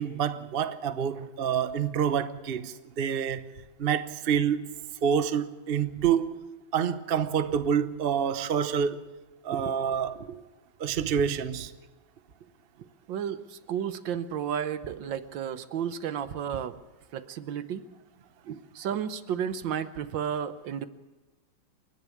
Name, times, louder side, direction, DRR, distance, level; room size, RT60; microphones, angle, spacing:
voice 1, 0.0-3.5 3.8-4.7 5.0-6.4 6.7-9.0 9.4-10.2 10.8-11.7, right 8 dB, 50° right, 0.7 m, -27 dB
voice 2, 13.1-16.8 17.1-17.8 18.4-20.9, right 8 dB, 70° right, 1.5 m, -33 dB
29.5 x 10.5 x 8.5 m
omnidirectional pair, 2.2 m